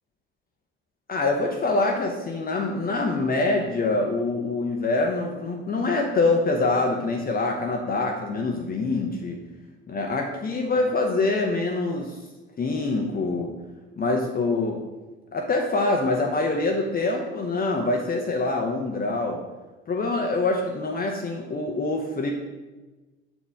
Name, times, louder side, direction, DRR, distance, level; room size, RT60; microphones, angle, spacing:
voice 1, 1.1-9.4 9.9-12.1 12.6-13.5 14.0-14.8 15.3-19.4 19.9-22.3, left 3 dB, 30° left, 1 dB, 0.8 m, -25 dB
6.9 x 4.3 x 3.5 m, 1.2 s
figure-of-eight pair, 55°, 30 cm